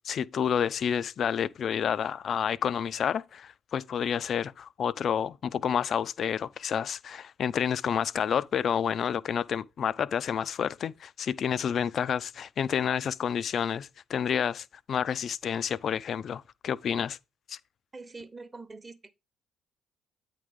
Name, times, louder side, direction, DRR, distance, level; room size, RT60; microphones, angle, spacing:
voice 1, 0.0-17.2 17.5-17.6, left 8 dB, 50° left, 0.3 m, -29 dB
voice 2, 17.9-19.1, right 3 dB, 25° right, 0.9 m, -44 dB
9.1 x 3.7 x 5.0 m
hypercardioid pair, 50°, 0 cm